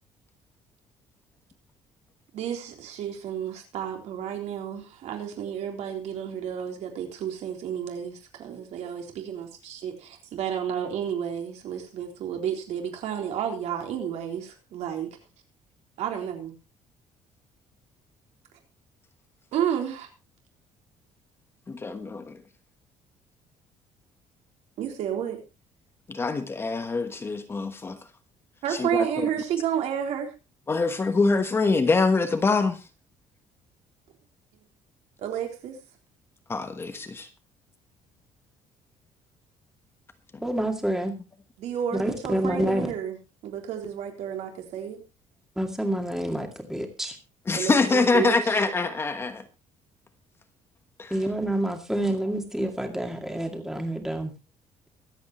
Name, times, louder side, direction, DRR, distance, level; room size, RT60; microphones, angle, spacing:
voice 1, 2.3-15.2 16.0-16.5 19.5-20.1 24.8-25.4 28.6-30.3 35.2-35.8 41.6-43.2 43.4-45.0 47.5-48.6, right 9 dB, 65° right, 3.7 m, -31 dB
voice 2, 21.7-22.4 26.1-28.0 28.7-29.3 30.7-32.8 36.5-37.3 40.3-40.4 47.5-49.4 51.0-51.1, left 3 dB, 20° left, 1.2 m, -24 dB
voice 3, 40.4-41.1 41.9-42.9 45.6-47.2 51.1-54.3, right 1 dB, 5° right, 2.2 m, -28 dB
24.0 x 8.4 x 3.1 m
cardioid pair, 175°, 12 cm